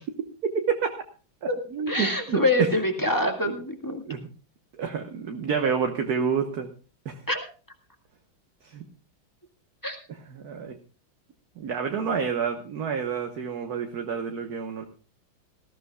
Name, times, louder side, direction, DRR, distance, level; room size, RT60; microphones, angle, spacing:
voice 1, 0.5-0.9 1.4-2.7 3.4-3.5 3.9-4.3 4.8-6.7 7.0-7.2 8.6-8.8 10.3-10.8 11.6-14.8, right 6 dB, 55° right, 4 dB, 1.6 m, -29 dB
voice 2, 1.9-4.0 7.3-7.4 9.8-10.0, left 1 dB, 10° left, 3 dB, 1.8 m, -25 dB
19.0 x 14.5 x 2.3 m, 0.37 s
omnidirectional pair, 2.2 m